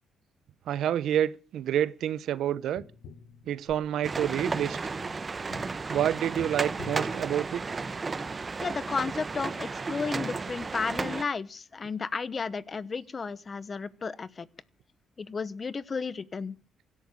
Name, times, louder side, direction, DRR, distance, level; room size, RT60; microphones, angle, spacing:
voice 1, 0.7-2.8 3.5-4.8 5.9-7.8, right 10 dB, 75° right, 0.9 m, -28 dB
Tap, 2.8-8.0 10.6-10.7, left 5 dB, 80° left, 1.7 m, -48 dB
sound 1, 4.0-11.2, right 4 dB, 30° right, 0.9 m, -33 dB
voice 2, 8.6-14.5 15.2-16.6, left 5 dB, 35° left, 1.0 m, -33 dB
17.0 x 12.5 x 6.5 m
cardioid pair, 90°, 0 cm